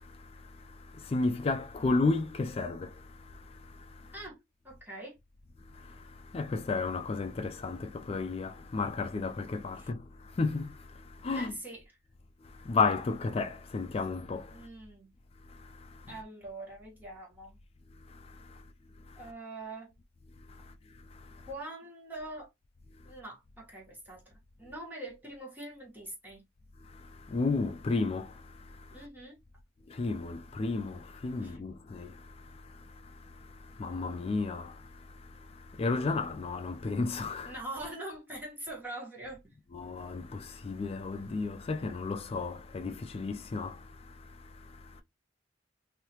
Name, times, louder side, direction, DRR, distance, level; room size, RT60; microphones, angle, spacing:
voice 1, 0.0-4.1 5.7-11.5 12.4-14.7 15.5-16.1 18.0-18.6 19.1-19.2 20.4-21.5 26.8-29.0 29.9-37.5 39.7-45.0, left 3 dB, 30° left, 0.3 m, -34 dB
voice 2, 4.6-5.2 9.8-9.9 11.3-11.9 14.5-15.1 16.1-17.6 19.2-19.9 21.5-22.5 23.0-24.3 24.6-26.4 28.9-29.4 31.4-31.6 37.4-39.4 44.9-45.0, right 1 dB, 10° right, 1.3 m, -43 dB
3.1 x 2.7 x 2.9 m
head